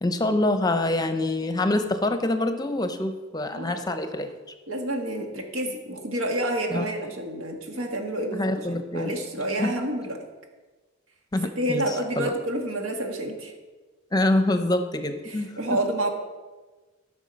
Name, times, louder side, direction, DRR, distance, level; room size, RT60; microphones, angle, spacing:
voice 1, 0.0-4.3 6.7-6.9 7.7-7.9 8.3-9.1 9.6-9.7 11.3-12.3 14.1-15.8, left 2 dB, 20° left, 8 dB, 0.6 m, -26 dB
voice 2, 4.7-10.2 11.6-13.5 15.2-16.1, right 1 dB, 90° right, 3 dB, 1.6 m, -29 dB
12.5 x 6.2 x 5.2 m, 1.3 s
head